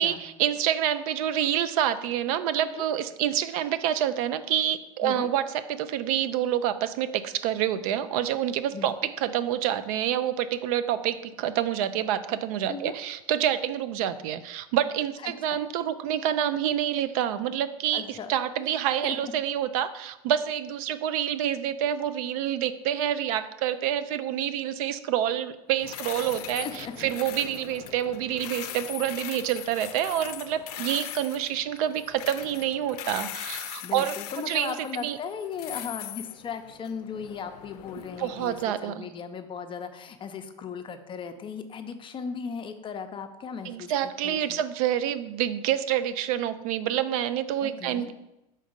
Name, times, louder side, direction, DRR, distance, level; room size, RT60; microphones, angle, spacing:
voice 1, 0.0-34.1 34.5-34.7 35.0-35.2 38.2-39.1 43.6-48.1, right 10 dB, 65° right, 12 dB, 0.4 m, -27 dB
voice 2, 15.2-15.6 17.9-18.3 19.0-19.2 26.6-27.1 33.8-44.6 47.6-48.1, left 6 dB, 25° left, 7 dB, 0.6 m, -37 dB
sound 1, 25.8-38.6, left 12 dB, 75° left, 0.5 m, -40 dB
5.2 x 3.9 x 5.0 m, 0.95 s
supercardioid pair, 110°, 20 cm